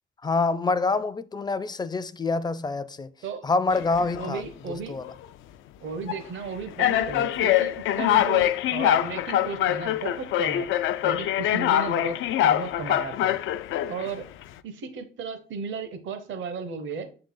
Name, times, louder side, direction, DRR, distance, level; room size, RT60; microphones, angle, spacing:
voice 1, 0.2-3.1 3.4-4.4 4.7-5.1, left 3 dB, 20° left, 0.4 m, -26 dB
sound 1, 3.7-4.3 5.0-5.2 6.1-6.2 6.8-14.1, left 12 dB, 80° left, 0.4 m, -24 dB
voice 2, 4.2-5.0 5.8-10.7 11.0-12.2 12.4-13.4 13.9-14.2 14.6-17.1, right 5 dB, 70° right, 0.9 m, -34 dB
6.8 x 3.9 x 3.8 m
cardioid pair, 90°, 20 cm